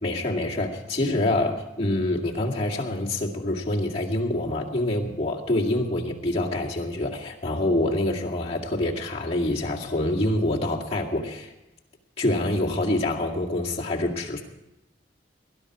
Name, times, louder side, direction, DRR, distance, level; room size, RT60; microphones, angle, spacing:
voice 1, 0.0-11.5 12.2-14.4, left 1 dB, 35° left, -4 dB, 2.1 m, -26 dB
20.0 x 11.0 x 4.8 m, 0.90 s
head